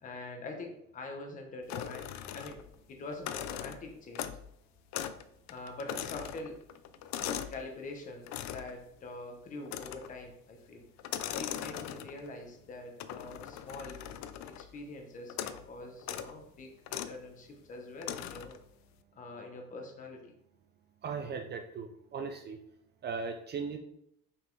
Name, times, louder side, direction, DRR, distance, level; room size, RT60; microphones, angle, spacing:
voice 1, 0.0-2.6 2.9-4.3 5.5-6.6 7.2-10.9 11.3-14.0 14.4-18.6 19.1-20.3, left 2 dB, 25° left, 2 dB, 0.8 m, -44 dB
sound 1, 1.7-2.8 3.1-4.5 4.9-5.2 5.5-7.6 8.3-8.8 9.7-10.2 11.0-12.3 13.0-14.7 15.3-15.7 16.0-16.3 16.9-17.2 18.0-18.6, left 10 dB, 60° left, 0.5 m, -40 dB
voice 2, 21.0-22.6 23.0-23.8, right 5 dB, 35° right, 5 dB, 0.4 m, -38 dB
5.6 x 4.0 x 4.5 m, 0.76 s
cardioid pair, 180°, 31 cm